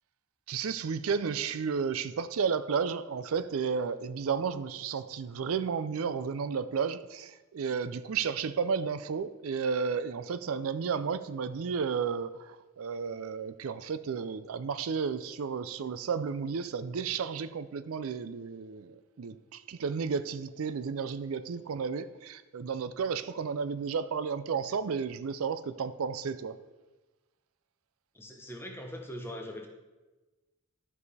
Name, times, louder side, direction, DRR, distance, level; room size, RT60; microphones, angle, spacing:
voice 1, 0.5-26.6, right 6 dB, 80° right, 13 dB, 0.4 m, -32 dB
voice 2, 28.1-29.7, equal, 10° left, 3 dB, 0.8 m, -41 dB
12.0 x 4.9 x 4.1 m, 1.2 s
head